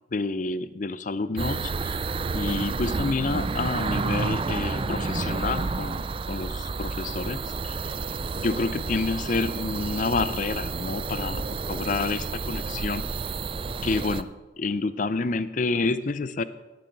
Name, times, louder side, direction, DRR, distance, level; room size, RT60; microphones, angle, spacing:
voice 1, 0.1-2.0 2.3-7.9 8.3-13.0 13.8-14.3 14.6-16.4, left 3 dB, 40° left, 14 dB, 0.5 m, -29 dB
sound 1, 1.4-14.2, right 4 dB, 30° right, 0.3 m, -30 dB
17.5 x 9.1 x 4.6 m, 1.2 s
head